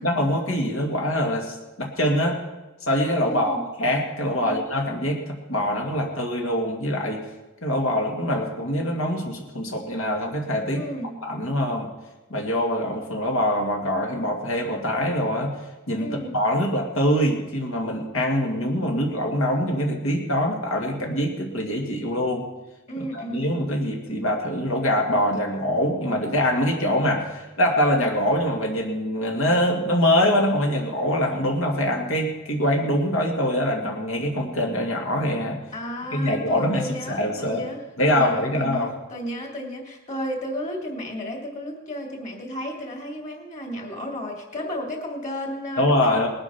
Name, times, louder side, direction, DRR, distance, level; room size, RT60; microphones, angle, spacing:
voice 1, 0.0-2.4 2.9-7.2 7.6-10.8 11.2-11.9 12.3-15.5 15.9-22.5 23.0-35.6 36.1-37.6 38.0-38.9 45.8-46.3, left 1 dB, 70° left, 1 dB, 2.0 m, -24 dB
voice 2, 3.2-3.6 4.4-4.6 10.7-11.1 16.0-16.3 22.9-23.5 35.7-46.3, equal, 35° left, 1 dB, 2.9 m, -33 dB
19.5 x 8.8 x 5.8 m, 1.1 s
head